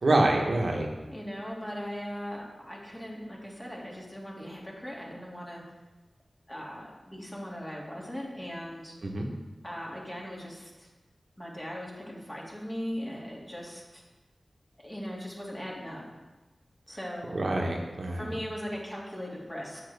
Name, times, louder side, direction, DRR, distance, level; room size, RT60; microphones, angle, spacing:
voice 1, 0.0-0.9 9.0-9.3 17.3-18.3, right 2 dB, 70° right, 0 dB, 1.1 m, -26 dB
voice 2, 1.1-5.6 6.5-8.9 9.6-10.9 11.4-14.0 14.8-16.0 16.9-17.5 18.1-19.8, equal, 20° left, -4 dB, 2.3 m, -39 dB
8.2 x 7.6 x 3.5 m, 1.2 s
wide cardioid pair, 65°, 0 cm